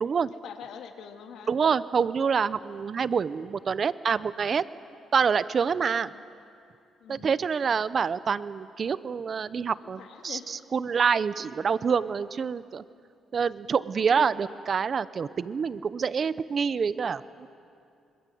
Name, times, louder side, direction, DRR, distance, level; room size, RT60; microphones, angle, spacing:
voice 1, 0.4-1.5 5.9-6.2 7.0-7.3 10.0-10.5, left 8 dB, 80° left, 4 dB, 2.2 m, -44 dB
voice 2, 1.5-4.6 5.1-6.1 7.1-12.8 13.3-17.5, right 6 dB, 45° right, 15 dB, 0.8 m, -27 dB
26.0 x 25.0 x 7.9 m, 2.5 s
cardioid pair, 90°, 0 cm